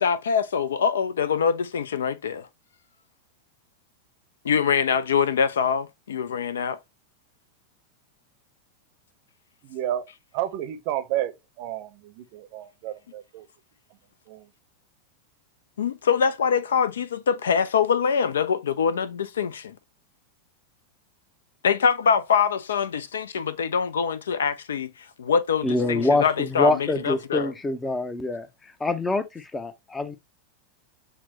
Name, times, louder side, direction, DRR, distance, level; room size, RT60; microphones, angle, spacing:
voice 1, 0.0-2.5 4.4-6.8 15.8-19.7 21.6-24.9 25.2-27.5, left 6 dB, 65° left, 0.3 m, -24 dB
voice 2, 9.6-10.0 10.3-13.5 14.3-14.5, right 12 dB, 45° right, 0.6 m, -31 dB
voice 3, 25.6-28.5 28.8-30.2, left 2 dB, 10° left, 0.5 m, -25 dB
5.8 x 2.1 x 2.8 m
figure-of-eight pair, 90°, 0 cm